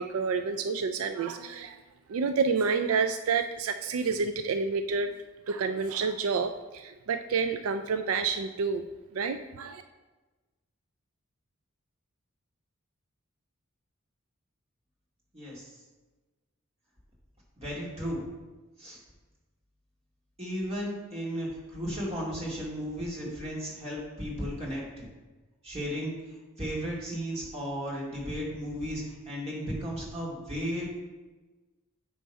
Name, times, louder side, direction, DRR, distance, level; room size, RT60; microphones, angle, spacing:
voice 1, 0.0-1.8 2.1-5.1 5.5-8.8 9.1-9.8, right 5 dB, 85° right, 9 dB, 0.4 m, -29 dB
voice 2, 15.3-15.7 17.6-18.2 18.8-19.0 20.4-25.1 25.6-26.2 26.6-30.9, equal, 30° right, -5 dB, 2.2 m, -34 dB
8.9 x 3.2 x 5.4 m, 1.2 s
head